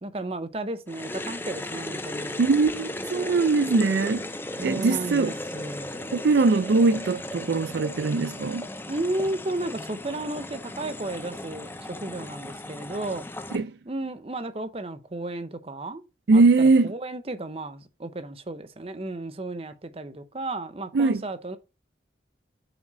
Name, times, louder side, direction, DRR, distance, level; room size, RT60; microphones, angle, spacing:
voice 1, 0.0-2.4 4.6-6.2 8.9-13.2 13.8-16.0 16.3-21.6, right 2 dB, 30° right, 0.7 m, -33 dB
sound 1, 0.9-13.6, left 1 dB, 10° left, 0.5 m, -36 dB
voice 2, 2.4-4.3 4.6-5.3 6.1-8.7 13.5-13.7 16.3-16.9 20.9-21.2, right 3 dB, 65° right, 0.4 m, -21 dB
7.4 x 3.5 x 6.1 m
head